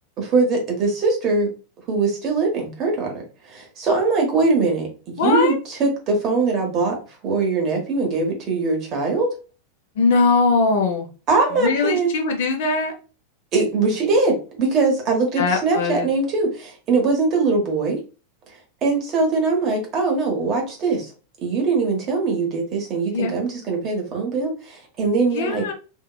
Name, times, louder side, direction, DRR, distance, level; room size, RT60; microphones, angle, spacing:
voice 1, 0.2-1.5 1.9-3.1 3.4-7.0 7.2-9.3 11.3-12.1 13.5-18.0 18.8-21.1 21.4-25.6, right 3 dB, 35° right, 1 dB, 1.1 m, -21 dB
voice 2, 5.2-5.6 10.0-11.1 11.6-12.9 15.4-16.1 23.1-23.3 25.3-25.7, left 4 dB, 55° left, 4 dB, 0.7 m, -20 dB
2.7 x 2.7 x 2.3 m, 0.35 s
figure-of-eight pair, 90°, 0 cm